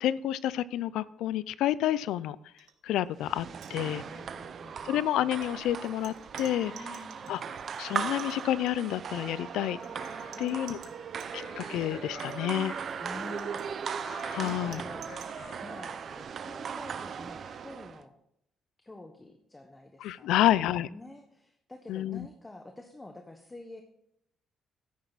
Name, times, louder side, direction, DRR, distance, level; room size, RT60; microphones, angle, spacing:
voice 1, 0.0-2.4 2.8-4.0 4.8-6.7 7.3-7.4 7.8-9.8 10.4-10.8 11.3-12.7 14.3-14.8 20.0-20.9 21.9-22.3, left 13 dB, 90° left, 18 dB, 0.5 m, -29 dB
sound 1, 2.6-2.7 3.0-3.2 3.5-4.3 5.1-11.3 12.1-15.4, right 9 dB, 85° right, 1.5 m, -54 dB
sound 2, 3.2-18.0, right 7 dB, 55° right, 0.8 m, -38 dB
voice 2, 3.9-5.0 6.7-7.3 10.3-10.7 13.0-15.0 15.6-16.0 16.3-18.1 18.8-20.5 20.9-23.8, left 2 dB, 20° left, 5 dB, 1.4 m, -48 dB
sound 3, 5.2-16.2, left 2 dB, 70° left, 5.3 m, -50 dB
13.5 x 10.0 x 4.1 m, 0.75 s
cardioid pair, 90°, 0 cm